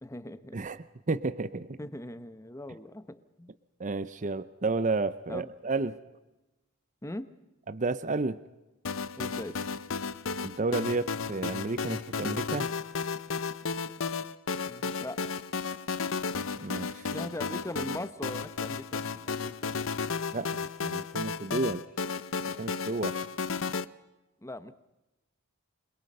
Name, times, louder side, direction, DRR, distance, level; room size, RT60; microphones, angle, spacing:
voice 1, 0.0-0.6 1.8-3.5 5.3-5.5 7.0-7.3 9.2-9.6 14.7-15.2 17.1-19.7 24.4-24.7, left 1 dB, 15° left, 13 dB, 1.0 m, -40 dB
voice 2, 1.1-1.8 3.8-6.0 7.7-8.4 10.4-12.7 16.6-17.1 20.3-21.8 22.6-23.2, right 3 dB, 35° right, 13 dB, 0.7 m, -31 dB
sound 1, 8.8-23.8, left 5 dB, 65° left, 0.7 m, -33 dB
28.5 x 22.0 x 5.5 m, 1.0 s
head